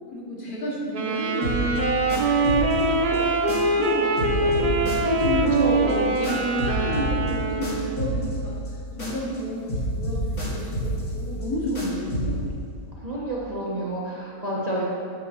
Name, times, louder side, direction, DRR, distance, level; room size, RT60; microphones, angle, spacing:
voice 1, 0.1-1.9 2.3-3.3 3.7-8.6 9.0-12.4, equal, 75° left, -4 dB, 1.9 m, -31 dB
Wind instrument woodwind instrument, 0.9-8.1, right 2 dB, 65° right, 0.4 m, -24 dB
sound 1, 1.4-3.9 4.2-9.4 9.7-12.5, equal, 55° left, 2.2 m, -30 dB
voice 2, 5.5-6.1 13.0-14.8, right 1 dB, 35° right, -6 dB, 0.8 m, -29 dB
7.2 x 5.2 x 4.2 m, 2.5 s
omnidirectional pair, 1.6 m